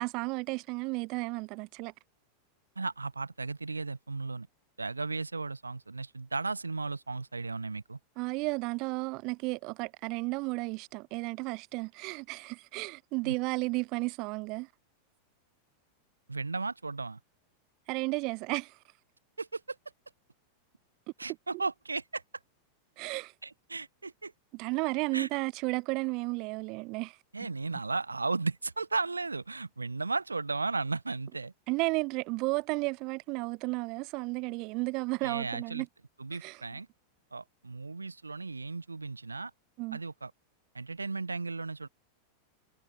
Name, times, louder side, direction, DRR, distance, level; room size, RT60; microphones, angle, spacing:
voice 1, 0.0-1.9 8.2-14.7 17.9-18.8 23.0-23.3 24.5-27.2 31.7-35.9 36.3-36.6 39.8-40.0, right 26 dB, 40° right, 0.5 m, -33 dB
voice 2, 2.8-4.5 4.8-8.0 13.2-13.3 16.3-17.2 19.4-19.8 21.2-22.2 23.4-24.3 25.1-25.3 27.3-31.5 35.2-35.8 36.2-36.9 37.3-39.5 39.9-40.3 40.7-41.9, right 3 dB, 80° right, 0.8 m, -35 dB
figure-of-eight pair, 90°, 0 cm